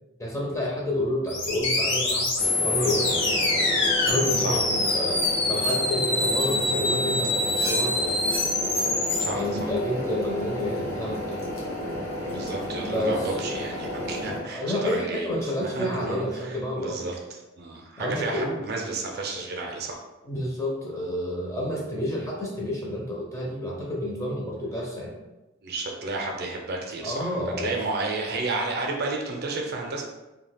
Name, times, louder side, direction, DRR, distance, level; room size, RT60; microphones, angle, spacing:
voice 1, 0.2-3.3 4.1-8.2 9.3-11.4 12.8-13.3 14.2-17.2 18.0-18.6 20.3-25.2 27.0-27.7, left 1 dB, 15° left, -3 dB, 0.4 m, -29 dB
sound 1, 1.3-9.3, left 2 dB, 55° left, 0.6 m, -25 dB
sound 2, 2.4-14.4, left 1 dB, 75° left, 1.1 m, -32 dB
voice 2, 9.2-9.7 12.2-15.3 15.6-20.0 25.6-30.0, right 3 dB, 50° right, 1 dB, 0.4 m, -32 dB
2.3 x 2.2 x 3.3 m, 1.0 s
head